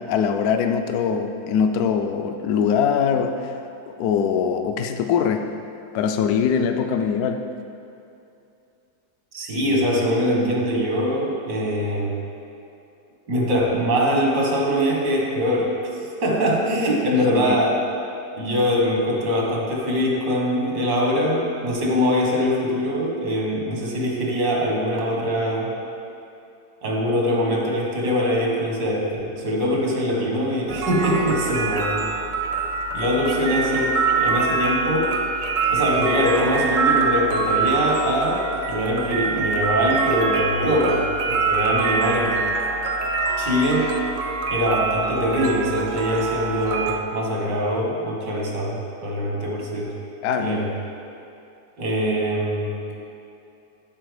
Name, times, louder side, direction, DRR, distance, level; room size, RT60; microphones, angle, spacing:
voice 1, 0.0-3.5 3.9-5.5 5.9-7.5 17.1-17.6 50.2-50.6, left 7 dB, 70° left, 6 dB, 1.0 m, -22 dB
voice 2, 9.3-12.1 13.3-15.7 16.2-17.8 18.4-25.8 26.8-32.1 32.9-35.2 35.7-42.4 43.4-43.9 44.5-49.9 50.4-50.7 51.8-52.9, equal, 80° right, -1 dB, 1.9 m, -23 dB
sound 1, 30.7-47.0, right 4 dB, 65° right, 0.9 m, -24 dB
12.0 x 4.2 x 4.8 m, 2.7 s
omnidirectional pair, 1.8 m